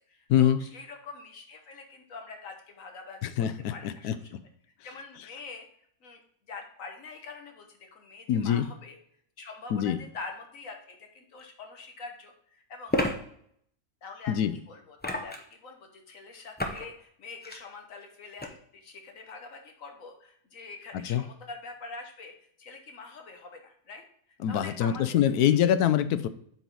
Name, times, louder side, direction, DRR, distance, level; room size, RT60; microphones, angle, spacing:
voice 1, 0.0-3.3 3.7-4.3 4.8-5.7 6.0-6.2 6.5-9.0 9.4-13.0 14.0-24.0 24.5-25.6, left 4 dB, 60° left, 3 dB, 1.6 m, -45 dB
voice 2, 3.2-4.4 8.3-8.7 9.7-10.0 14.3-14.5 21.0-21.2 24.4-26.3, left 10 dB, 80° left, 12 dB, 1.1 m, -24 dB
sound 1, 11.4-11.5 12.9-13.2 15.0-15.5 16.6-16.9 17.3-17.6 18.4-18.5, left 1 dB, 10° left, 0.4 m, -30 dB
8.0 x 4.7 x 4.0 m, 0.66 s
omnidirectional pair, 1.6 m